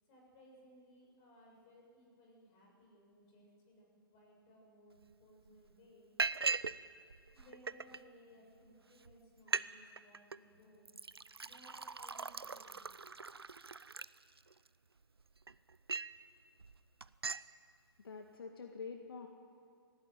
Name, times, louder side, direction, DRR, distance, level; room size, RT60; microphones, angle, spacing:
voice 1, 0.1-6.1 7.3-10.9 11.4-12.8, equal, 30° left, -1 dB, 7.4 m, -62 dB
Liquid, 5.0-5.1 5.5-5.7 6.2-6.8 7.1-8.0 8.7-8.8 9.0-9.1 9.4-9.7 10.0-10.4 10.8-14.7 15.2-16.2 16.6-16.8 17.0-17.5, right 4 dB, 90° right, 0.6 m, -39 dB
voice 2, 18.0-19.3, left 5 dB, 70° left, 4 dB, 1.8 m, -46 dB
19.0 x 15.5 x 9.4 m, 2.6 s
figure-of-eight pair, 130°, 13 cm